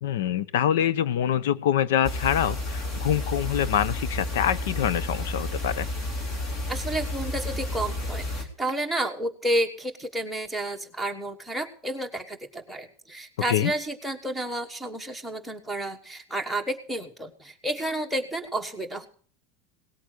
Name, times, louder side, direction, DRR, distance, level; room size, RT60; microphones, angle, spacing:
voice 1, 0.0-5.9 13.5-13.7, left 10 dB, 80° left, 19 dB, 0.8 m, -25 dB
sound 1, 2.0-8.4, left 1 dB, 30° left, 2.8 m, -31 dB
voice 2, 6.7-19.1, right 1 dB, ahead, 2 dB, 1.3 m, -31 dB
18.0 x 8.3 x 6.5 m, 0.43 s
supercardioid pair, 175°, 0 cm